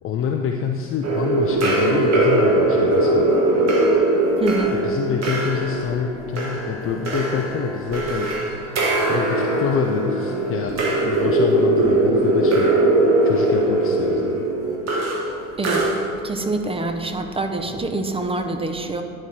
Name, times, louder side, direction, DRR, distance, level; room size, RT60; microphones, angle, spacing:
voice 1, 0.0-3.4 4.7-8.3 9.1-14.4, left 7 dB, 35° left, 3 dB, 0.5 m, -27 dB
sound 1, 1.0-16.4, right 2 dB, 40° right, 1.5 m, -20 dB
voice 2, 4.4-4.7 15.6-15.9 16.2-19.0, right 2 dB, 15° right, 6 dB, 0.7 m, -25 dB
10.5 x 4.3 x 4.6 m, 2.4 s
hypercardioid pair, 80°, 40 cm